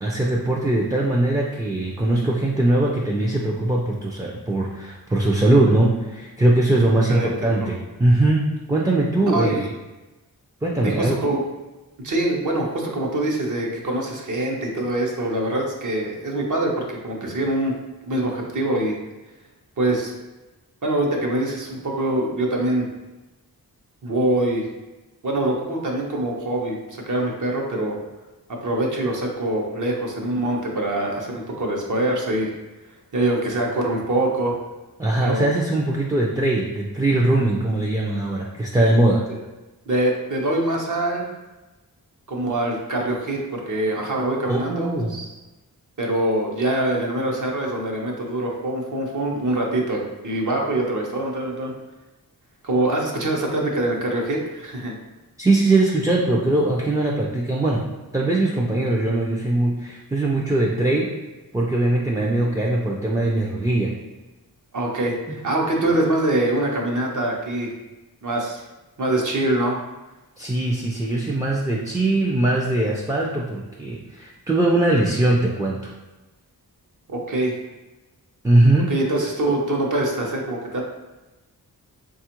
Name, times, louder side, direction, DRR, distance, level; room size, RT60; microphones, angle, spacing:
voice 1, 0.0-9.7 10.6-11.2 35.0-39.2 44.5-45.1 55.4-57.8 58.1-61.1 61.5-63.9 70.4-75.9 78.4-78.9, right 2 dB, 10° right, -3 dB, 0.3 m, -21 dB
voice 2, 7.1-7.6 9.3-9.7 10.8-11.4 12.0-17.7 18.0-19.0 19.8-20.1 20.8-22.9 24.0-24.7 25.2-28.0 28.5-32.5 33.1-34.6 35.2-35.5 38.8-38.9 39.9-41.3 42.3-45.3 46.0-51.7 52.6-54.9 64.7-67.7 68.2-68.6 69.0-69.8 77.1-77.6 78.9-80.8, right 1 dB, 50° right, -1 dB, 0.7 m, -24 dB
4.2 x 2.4 x 2.9 m, 1.1 s
wide cardioid pair, 90°, 38 cm